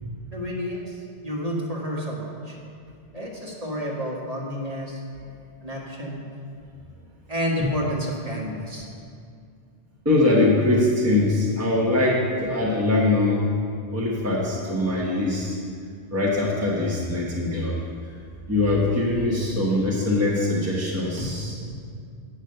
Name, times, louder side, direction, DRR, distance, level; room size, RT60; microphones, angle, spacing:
voice 1, 0.3-2.6 3.1-5.0 5.6-6.2 7.3-8.9, equal, 35° right, -3 dB, 1.5 m, -30 dB
voice 2, 10.0-13.5 13.9-15.6 16.1-17.8 18.5-21.7, left 2 dB, 15° right, -4 dB, 1.2 m, -22 dB
8.9 x 6.3 x 6.6 m, 2.3 s
omnidirectional pair, 1.1 m